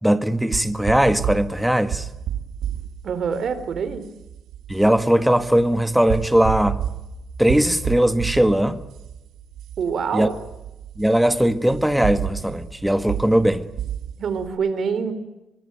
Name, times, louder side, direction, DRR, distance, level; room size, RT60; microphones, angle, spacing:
voice 1, 0.0-2.1 4.7-6.8 7.4-8.8 10.1-10.3 11.0-13.7, right 1 dB, 5° right, 1.7 m, -19 dB
sound 1, 0.5-14.5, right 10 dB, 80° right, 3.2 m, -32 dB
voice 2, 3.0-4.0 9.8-10.3 14.2-15.1, right 6 dB, 60° right, 4.2 m, -25 dB
24.5 x 23.5 x 9.3 m
cardioid pair, 90°, 0 cm